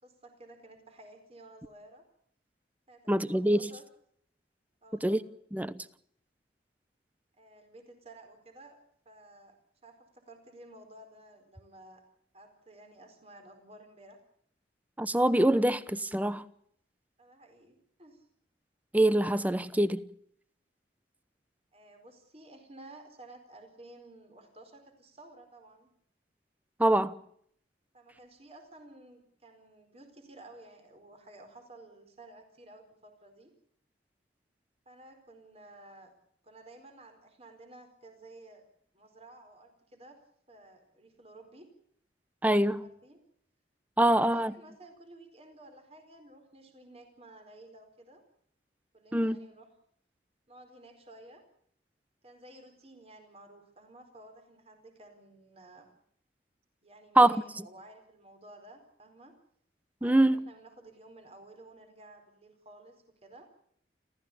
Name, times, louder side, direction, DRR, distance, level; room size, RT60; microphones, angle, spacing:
voice 1, 0.0-2.0 2.9-3.8 4.8-5.2 7.4-8.8 9.0-9.6 9.8-12.0 12.3-14.2 17.2-18.2 21.7-25.9 27.9-33.5 34.9-36.1 36.4-38.6 38.9-40.2 40.5-41.7 42.8-43.2 44.1-48.2 48.9-49.7 50.5-51.4 52.2-55.9 56.8-59.3 60.0-63.5, right 2 dB, 35° right, 4.5 m, -53 dB
voice 2, 3.1-3.6 5.0-5.2 5.5-5.8 15.0-16.4 18.9-20.0 26.8-27.2 42.4-42.8 44.0-44.5 49.1-49.4 57.2-57.4 60.0-60.4, right 1 dB, 10° right, 0.9 m, -24 dB
29.5 x 14.0 x 8.6 m
head